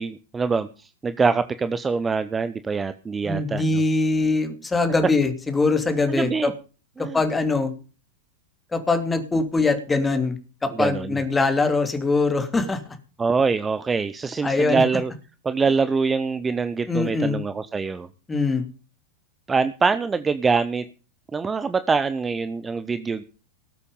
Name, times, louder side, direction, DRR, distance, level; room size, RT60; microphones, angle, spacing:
voice 1, 0.0-3.8 6.1-6.5 7.0-7.2 10.7-11.2 13.2-15.1 15.4-18.1 19.5-20.8 21.3-23.2, right 4 dB, 15° right, 13 dB, 0.7 m, -24 dB
voice 2, 3.2-6.5 7.1-7.7 8.7-13.0 14.4-14.8 16.9-17.4 18.3-18.6, left 3 dB, 10° left, 7 dB, 2.8 m, -22 dB
19.5 x 8.3 x 5.4 m, 0.35 s
figure-of-eight pair, 90°, 0 cm